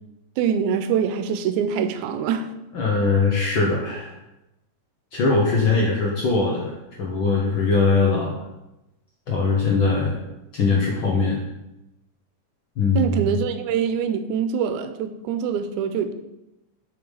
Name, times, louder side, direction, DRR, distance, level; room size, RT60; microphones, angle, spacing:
voice 1, 0.4-2.5 13.0-16.1, right 7 dB, 90° right, 9 dB, 2.0 m, -24 dB
voice 2, 2.7-4.1 5.1-8.4 9.3-10.2 10.5-11.4 12.8-13.3, left 4 dB, 60° left, -2 dB, 1.3 m, -21 dB
6.8 x 5.3 x 5.3 m, 0.96 s
omnidirectional pair, 3.4 m